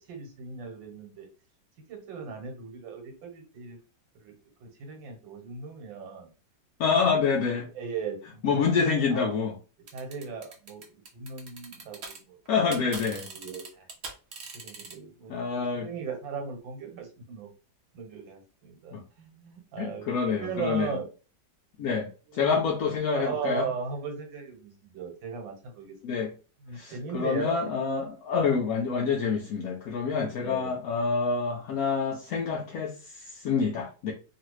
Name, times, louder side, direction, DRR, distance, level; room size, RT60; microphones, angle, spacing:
voice 1, 0.1-1.3 1.9-3.8 4.2-4.3 4.6-6.3 7.7-8.9 9.9-12.4 13.2-13.8 14.5-17.5 17.9-21.1 22.3-22.6 23.1-26.2 26.6-27.7 30.4-30.7, right 6 dB, 85° right, 3 dB, 1.7 m, -38 dB
voice 2, 6.8-7.7 8.4-9.6 12.5-13.3 15.3-15.9 18.9-19.0 19.8-21.0 21.8-23.7 26.0-26.3 26.7-33.0 33.2-34.1, left 5 dB, 75° left, 0 dB, 0.8 m, -27 dB
sound 1, 9.9-12.2 12.5-14.9, right 4 dB, 60° right, 0.6 m, -41 dB
3.1 x 2.4 x 3.0 m, 0.34 s
omnidirectional pair, 2.0 m